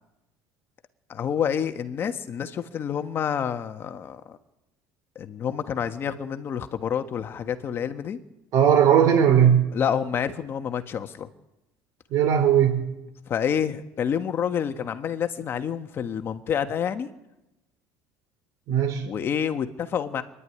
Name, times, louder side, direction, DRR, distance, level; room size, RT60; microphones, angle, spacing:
voice 1, 1.1-4.4 5.1-8.2 9.7-11.3 13.3-17.1 19.0-20.2, left 8 dB, 35° left, 8 dB, 1.5 m, -28 dB
voice 2, 8.5-9.7 12.1-12.9 18.7-19.0, right 9 dB, 55° right, 6 dB, 4.4 m, -18 dB
24.0 x 11.0 x 10.0 m, 0.96 s
cardioid pair, 150°, 7 cm